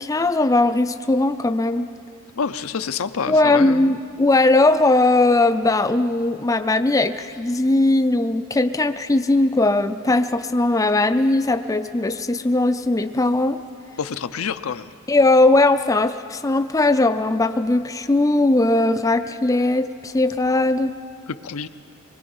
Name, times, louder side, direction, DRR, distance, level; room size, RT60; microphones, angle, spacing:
voice 1, 0.0-1.9 3.3-13.6 15.1-20.9, left 2 dB, 15° left, 9 dB, 0.4 m, -19 dB
voice 2, 2.4-3.9 14.0-14.9 21.3-21.7, left 6 dB, 75° left, 11 dB, 0.6 m, -28 dB
24.0 x 21.0 x 5.5 m, 2.4 s
head